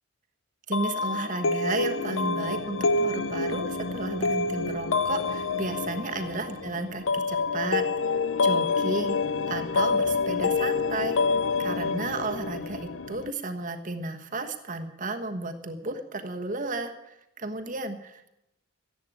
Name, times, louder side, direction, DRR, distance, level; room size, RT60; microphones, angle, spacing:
sound 1, 0.7-13.3, left 4 dB, 70° left, 0.7 m, -27 dB
voice 1, 0.7-9.2 9.5-18.3, right 2 dB, 40° right, 5 dB, 1.3 m, -33 dB
14.0 x 11.0 x 9.1 m, 0.86 s
head